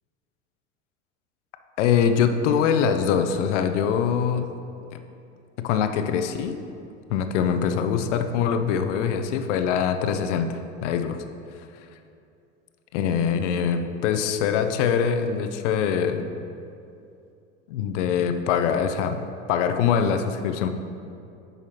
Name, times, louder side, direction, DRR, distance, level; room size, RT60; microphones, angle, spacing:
voice 1, 1.8-4.5 5.6-6.6 7.1-11.2 12.9-16.3 17.7-19.2 19.5-20.7, left 7 dB, 70° left, 8 dB, 0.7 m, -23 dB
8.9 x 5.6 x 2.9 m, 2.6 s
hypercardioid pair, 80°, 37 cm